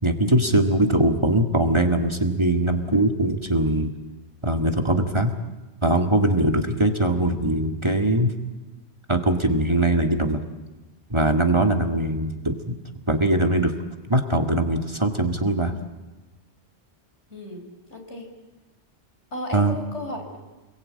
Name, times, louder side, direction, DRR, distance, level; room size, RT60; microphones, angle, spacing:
voice 1, 0.0-3.9 4.4-5.3 5.8-8.3 9.1-10.4 11.1-12.8 13.1-13.7 14.1-15.8 19.5-19.7, right 1 dB, 25° right, 5 dB, 2.0 m, -21 dB
voice 2, 17.3-17.6 17.9-18.3 19.3-20.4, left 1 dB, 80° left, 3 dB, 5.2 m, -34 dB
29.5 x 22.0 x 8.7 m, 1.1 s
omnidirectional pair, 1.1 m